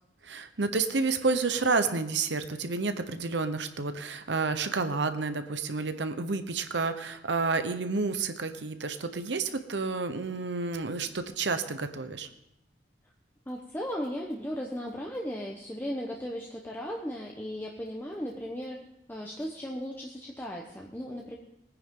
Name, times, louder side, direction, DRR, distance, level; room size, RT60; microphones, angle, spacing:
voice 1, 0.2-12.3, right 4 dB, 70° right, 9 dB, 0.9 m, -30 dB
voice 2, 13.5-18.8 19.1-21.4, equal, 10° left, -1 dB, 1.0 m, -36 dB
19.5 x 9.8 x 3.8 m, 0.85 s
head